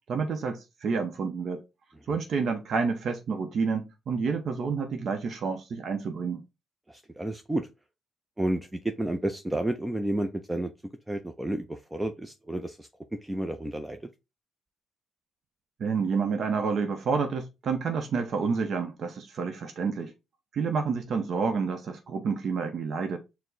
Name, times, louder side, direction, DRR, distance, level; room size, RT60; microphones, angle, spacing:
voice 1, 0.1-1.6 2.1-6.4 15.8-20.1 20.5-23.2, right 5 dB, 60° right, 0.6 m, -29 dB
voice 2, 6.9-7.7 8.4-10.7 11.1-12.9 13.2-14.0, right 1 dB, 10° right, 0.4 m, -31 dB
4.5 x 2.1 x 3.9 m
cardioid pair, 90°, 0 cm